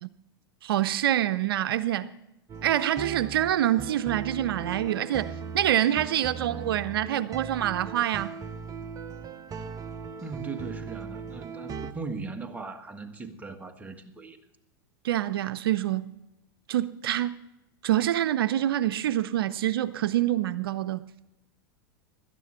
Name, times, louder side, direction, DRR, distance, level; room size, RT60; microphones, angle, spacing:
voice 1, 0.6-2.1 2.6-8.3 15.0-16.1 16.7-17.4 17.8-21.1, right 12 dB, 80° right, 0.6 m, -26 dB
sound 1, 2.5-11.9, right 6 dB, 30° right, 0.9 m, -38 dB
voice 2, 10.2-14.4, right 4 dB, 10° right, 1.5 m, -38 dB
17.0 x 12.5 x 4.3 m
hypercardioid pair, 110°, 12 cm